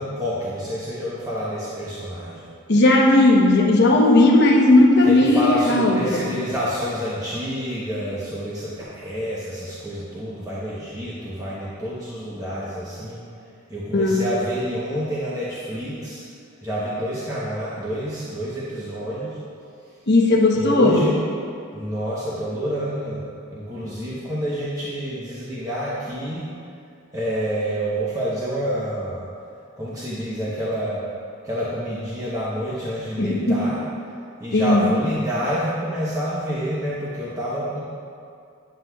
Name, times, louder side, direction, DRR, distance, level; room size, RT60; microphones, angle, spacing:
voice 1, 0.0-2.5 5.0-13.2 13.7-16.2 16.6-19.4 20.5-21.2 21.7-23.2 23.5-26.4 27.1-29.3 29.8-31.0 31.4-33.8 34.4-37.8, equal, 15° right, -8 dB, 0.8 m, -28 dB
voice 2, 2.7-6.3 13.9-14.2 20.1-21.0 33.2-33.6 34.5-34.8, left 2 dB, 50° left, -1 dB, 0.8 m, -16 dB
9.4 x 7.8 x 2.3 m, 2.4 s
head